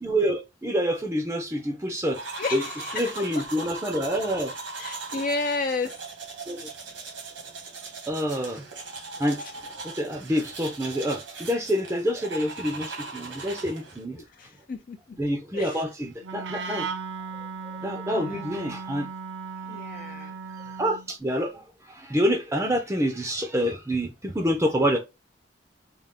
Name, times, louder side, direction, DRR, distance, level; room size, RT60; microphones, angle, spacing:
voice 1, 0.0-2.2 2.5-2.6 2.9-4.5 6.5-6.6 8.1-8.6 9.2-9.4 9.8-14.2 15.2-16.9 17.8-19.1 20.8-21.5 21.9-25.0, equal, 15° right, 0.5 m, -27 dB
sound 1, 2.1-14.0, right 3 dB, 90° right, 1.4 m, -39 dB
voice 2, 2.4-3.4 4.8-6.0 9.4-9.5 14.2-15.2 15.5-15.8 18.1-18.4 19.7-20.4, left 3 dB, 45° left, 0.4 m, -32 dB
Wind instrument woodwind instrument, 16.2-21.1, right 5 dB, 75° right, 0.6 m, -36 dB
3.7 x 2.4 x 3.4 m
head